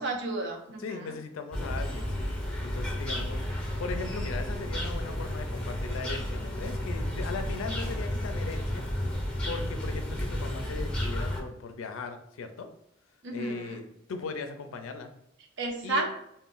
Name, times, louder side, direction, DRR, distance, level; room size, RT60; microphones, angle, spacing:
voice 1, 0.0-1.1 13.2-13.8 15.6-16.2, right 2 dB, 60° right, 3 dB, 0.5 m, -32 dB
voice 2, 0.8-2.3 2.6-3.5 3.8-8.9 9.4-12.7 13.3-13.8 14.1-15.1 15.8-16.0, left 4 dB, 80° left, 7 dB, 0.4 m, -38 dB
sound 1, 1.5-11.4, left 1 dB, 5° left, 0.6 m, -32 dB
2.5 x 2.1 x 3.5 m, 0.79 s
head